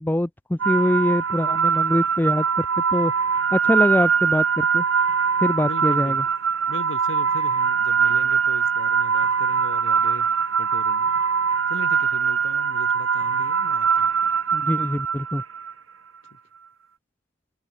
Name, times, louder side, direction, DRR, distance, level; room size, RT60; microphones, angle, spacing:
voice 1, 0.0-2.7 2.9-3.1 3.5-4.8 5.4-6.2 14.5-15.4, left 1 dB, 10° left, 0.5 m, -23 dB
sound 1, 0.6-15.7, right 6 dB, 85° right, 1.3 m, -22 dB
voice 2, 5.6-6.2 6.7-10.3 10.6-11.2 11.7-14.1, left 2 dB, 70° left, 2.9 m, -38 dB
head